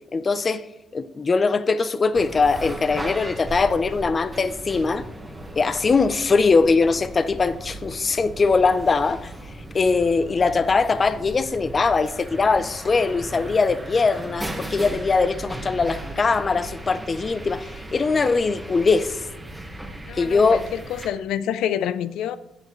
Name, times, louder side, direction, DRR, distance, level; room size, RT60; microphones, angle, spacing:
voice 1, 0.1-0.6 0.9-5.1 5.6-9.3 9.7-19.2 20.1-20.7, left 4 dB, 35° left, 0.6 m, -21 dB
sound 1, 2.1-21.1, right 1 dB, 5° right, 1.5 m, -37 dB
voice 2, 20.1-22.4, left 10 dB, 85° left, 0.5 m, -27 dB
15.5 x 6.7 x 3.2 m
cardioid pair, 90°, 0 cm